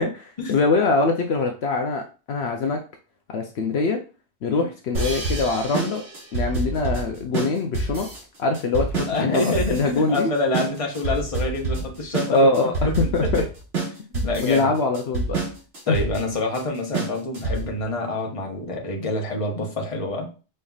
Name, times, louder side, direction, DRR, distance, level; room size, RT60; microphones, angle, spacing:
voice 1, 0.0-2.8 3.3-4.0 4.4-6.0 6.3-8.1 8.4-10.3 12.3-12.7 13.1-13.4 14.1-15.4 15.9-16.0, left 3 dB, 70° left, 3 dB, 0.8 m, -23 dB
sound 1, 4.9-17.8, right 3 dB, 65° right, 1.7 m, -28 dB
voice 2, 9.1-12.5 12.8-13.5 14.2-14.7 15.9-20.3, left 2 dB, 30° left, 0 dB, 1.0 m, -27 dB
5.4 x 3.3 x 2.4 m, 0.34 s
omnidirectional pair, 1.1 m